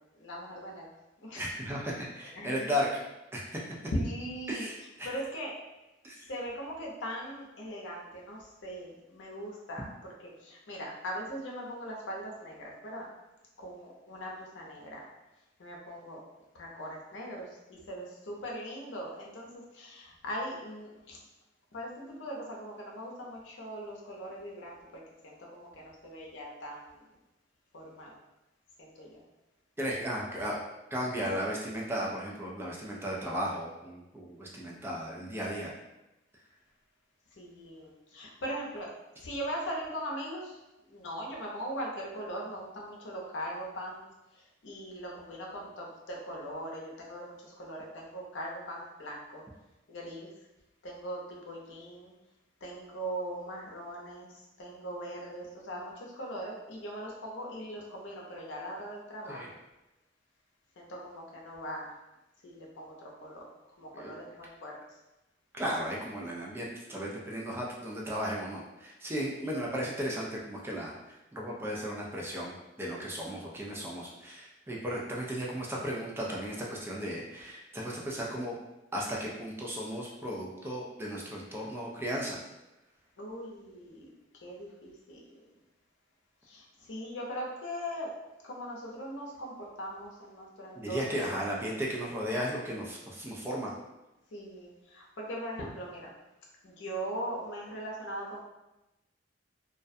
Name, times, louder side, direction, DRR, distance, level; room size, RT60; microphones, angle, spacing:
voice 1, 0.1-0.9 1.2-1.5 2.3-2.9 3.9-4.7 5.0-5.6 6.2-13.1 13.6-15.1 15.6-16.2 16.5-21.2 21.7-27.0 27.7-28.1 28.8-29.2 37.3-38.9 39.2-40.6 40.9-44.0 44.3-49.4 49.9-50.3 50.8-52.2 52.6-59.4 60.8-61.9 62.4-63.4 63.8-64.8 69.4-69.7 83.2-84.1 84.4-85.3 86.4-88.2 88.4-91.7 94.3-96.1 96.6-98.4, equal, 80° left, -3 dB, 0.6 m, -40 dB
voice 2, 1.4-3.0 3.3-3.6 4.5-5.1 6.0-6.3 29.8-30.6 30.9-35.7 59.3-59.5 63.9-64.2 65.5-78.5 78.9-82.4 90.8-93.7, equal, 15° right, -3 dB, 0.3 m, -35 dB
2.3 x 2.1 x 2.6 m, 0.98 s
head